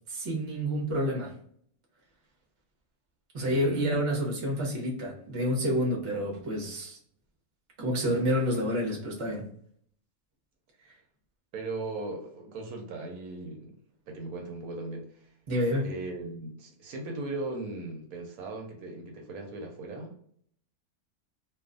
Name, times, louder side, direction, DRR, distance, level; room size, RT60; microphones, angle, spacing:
voice 1, 0.1-1.3 3.3-7.0 7.8-9.5 15.5-15.9, equal, 30° right, -2 dB, 0.6 m, -29 dB
voice 2, 3.4-4.0 11.5-13.7 14.1-15.3 15.8-20.2, right 2 dB, 75° right, 2 dB, 1.0 m, -38 dB
2.4 x 2.3 x 2.4 m, 0.62 s
omnidirectional pair, 1.6 m